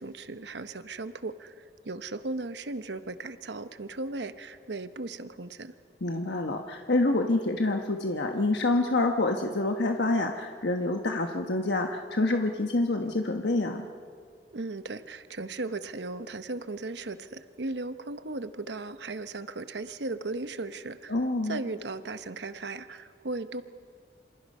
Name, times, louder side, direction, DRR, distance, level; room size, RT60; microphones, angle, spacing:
voice 1, 0.0-5.7 14.5-21.2 21.4-23.6, right 3 dB, 80° right, 11 dB, 0.9 m, -37 dB
voice 2, 6.0-13.9 21.1-21.6, left 2 dB, 80° left, 4 dB, 1.2 m, -27 dB
27.0 x 27.0 x 5.5 m, 2.1 s
head